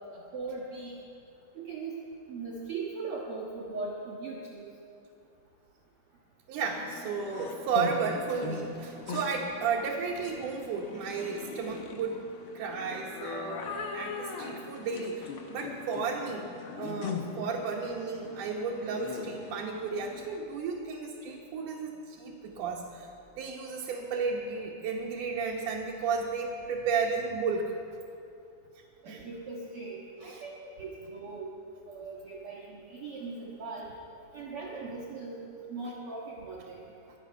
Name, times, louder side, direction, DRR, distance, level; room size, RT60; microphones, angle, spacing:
voice 1, 0.1-1.0 1.6-2.0 2.3-4.7 29.0-31.5 31.9-33.9 34.3-36.9, right 3 dB, 50° right, -5 dB, 2.1 m, -39 dB
voice 2, 6.5-12.2 12.5-16.5 16.7-23.1 23.4-27.7 29.1-29.3 30.3-30.4, right 5 dB, 80° right, -3 dB, 2.6 m, -33 dB
sound 1, 6.7-20.4, left 4 dB, 60° left, 1.6 m, -40 dB
23.0 x 8.6 x 5.7 m, 2.6 s
omnidirectional pair, 3.7 m